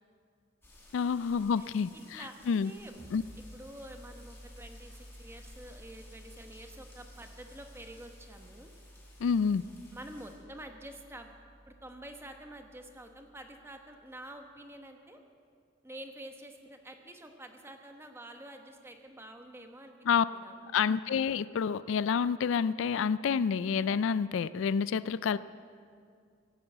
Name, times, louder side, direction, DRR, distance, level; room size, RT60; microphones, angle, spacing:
sound 1, 0.6-10.4, left 2 dB, 15° left, 3.8 m, -58 dB
voice 1, 0.9-2.7 3.1-3.2 9.2-9.6 20.1-20.2 20.7-25.4, left 6 dB, 75° left, 17 dB, 0.3 m, -28 dB
voice 2, 1.6-2.9 3.4-8.7 9.9-11.3 11.7-15.2 15.8-20.0 20.2-20.6, right 1 dB, 10° right, 5 dB, 1.0 m, -48 dB
sound 2, 2.9-14.3, equal, 40° right, 3.7 m, -54 dB
17.5 x 8.6 x 8.0 m, 2.2 s
head